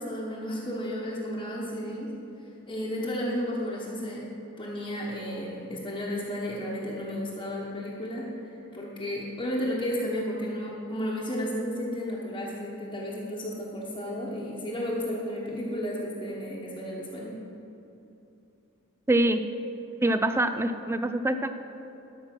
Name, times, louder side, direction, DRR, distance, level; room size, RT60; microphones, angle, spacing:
voice 1, 0.0-2.1 2.4-4.3 4.6-8.3 8.7-17.4, equal, 20° left, -7 dB, 1.2 m, -33 dB
voice 2, 19.1-19.4 20.0-21.5, right 1 dB, 10° right, 9 dB, 0.4 m, -24 dB
13.0 x 6.0 x 6.0 m, 2.9 s
head